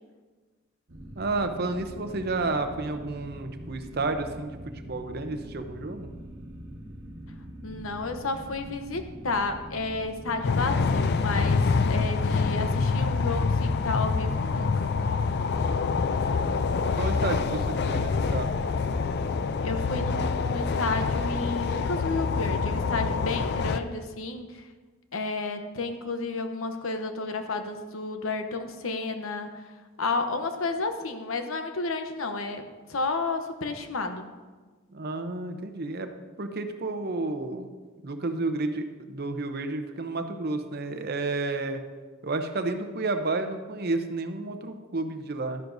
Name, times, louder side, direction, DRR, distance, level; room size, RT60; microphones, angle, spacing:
sound 1, 0.9-16.9, equal, 65° right, 1.4 m, -43 dB
voice 1, 1.2-4.6 4.8-6.1 16.9-18.5 34.9-36.1 36.4-37.7 38.0-41.8 42.2-45.6, right 2 dB, 50° right, 7 dB, 0.7 m, -31 dB
voice 2, 7.6-11.6 11.9-14.9 19.6-24.6 25.1-29.6 30.0-32.6 32.9-34.3, left 3 dB, 80° left, 7 dB, 0.9 m, -31 dB
sound 2, 10.4-23.8, left 4 dB, 50° left, 0.4 m, -26 dB
12.0 x 10.5 x 2.7 m, 1.4 s
head